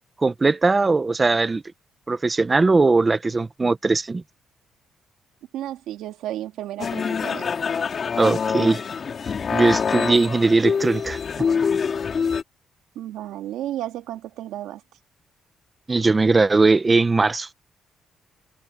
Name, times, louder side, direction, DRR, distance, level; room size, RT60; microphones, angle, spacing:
voice 1, 0.2-1.6 2.1-4.2 8.2-8.8 9.5-11.5 15.9-17.5, right 3 dB, 25° right, 1.3 m, -19 dB
voice 2, 5.5-7.5 12.9-14.8, right 13 dB, 90° right, 2.6 m, -33 dB
sound 1, 6.8-12.4, left 6 dB, 45° left, 3.3 m, -25 dB
cardioid pair, 90°, 0 cm